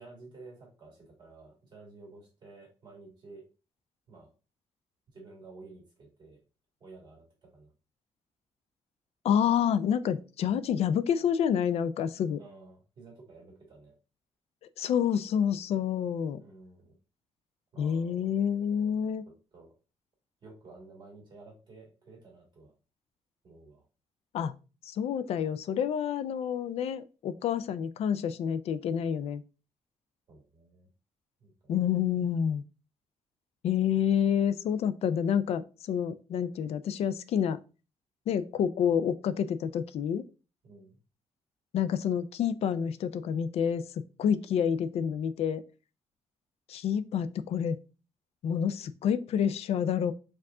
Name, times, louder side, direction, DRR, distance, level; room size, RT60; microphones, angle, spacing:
voice 1, 0.0-3.4 4.1-4.3 5.1-6.4 6.8-7.2 7.5-7.7 12.4-13.9 16.4-16.9 17.7-18.3 19.5-19.7 20.4-22.7 23.4-23.8 30.3-30.9 31.4-31.8 40.6-41.0, right 3 dB, 40° right, 1.8 m, -52 dB
voice 2, 9.2-12.4 14.8-16.4 17.8-19.2 24.3-24.5 24.9-29.4 31.7-32.6 33.6-37.6 38.3-40.2 41.7-43.8 44.2-45.6 46.7-47.8 48.4-50.1, left 8 dB, 65° left, 0.4 m, -28 dB
4.7 x 2.4 x 3.6 m
wide cardioid pair, 165°, 11 cm